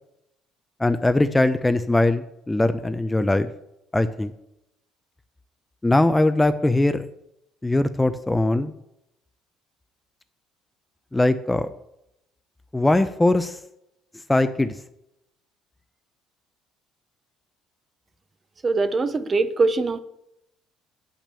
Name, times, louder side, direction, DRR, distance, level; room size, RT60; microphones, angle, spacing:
voice 1, 0.8-3.5 3.9-4.3 5.8-7.0 7.6-8.7 11.1-11.7 12.7-13.6 14.3-14.7, left 2 dB, 10° left, 11 dB, 0.4 m, -21 dB
voice 2, 18.6-20.0, right 3 dB, 25° right, 13 dB, 0.7 m, -22 dB
8.5 x 6.0 x 6.8 m, 0.82 s
cardioid pair, 120°, 0 cm